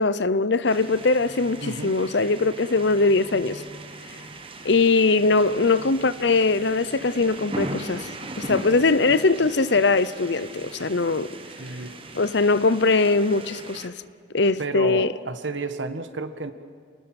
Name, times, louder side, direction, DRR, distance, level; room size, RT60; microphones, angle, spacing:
voice 1, 0.0-3.6 4.6-8.1 8.4-11.3 12.1-13.9 14.3-15.1, left 3 dB, 70° left, 0.8 m, -21 dB
sound 1, 0.7-13.9, right 2 dB, 30° right, 1.5 m, -38 dB
voice 2, 1.6-2.0 11.6-11.9 14.6-16.5, right 3 dB, 80° right, 1.5 m, -31 dB
29.0 x 20.0 x 6.1 m
head